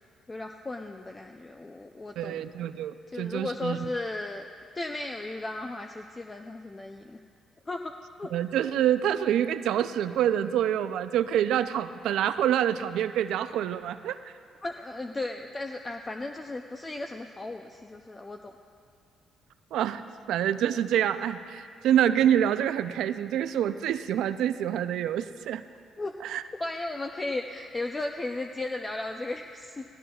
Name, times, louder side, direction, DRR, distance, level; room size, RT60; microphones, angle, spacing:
voice 1, 0.3-2.7 3.1-4.5 4.7-7.2 7.7-8.3 14.6-18.5 26.0-26.1 26.6-29.8, left 2 dB, 25° left, 4 dB, 0.5 m, -35 dB
voice 2, 2.2-3.9 8.3-14.3 19.7-25.6 26.2-26.4, right 10 dB, 85° right, 12 dB, 0.4 m, -27 dB
17.5 x 16.5 x 2.3 m, 2.3 s
cardioid pair, 90°, 0 cm